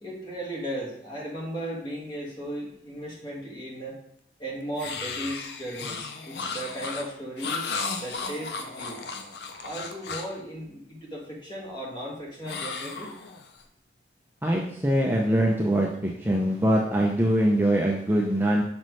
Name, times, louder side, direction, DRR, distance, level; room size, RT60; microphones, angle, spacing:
voice 1, 0.0-4.0 4.4-7.6 7.9-9.0 9.6-13.1, right 1 dB, 25° left, -4 dB, 1.6 m, -36 dB
sound 1, 4.8-10.4 12.4-13.6, left 4 dB, 75° left, 0.6 m, -35 dB
voice 2, 14.4-18.6, right 1 dB, 10° right, -1 dB, 0.5 m, -23 dB
5.8 x 5.1 x 3.1 m, 0.70 s
head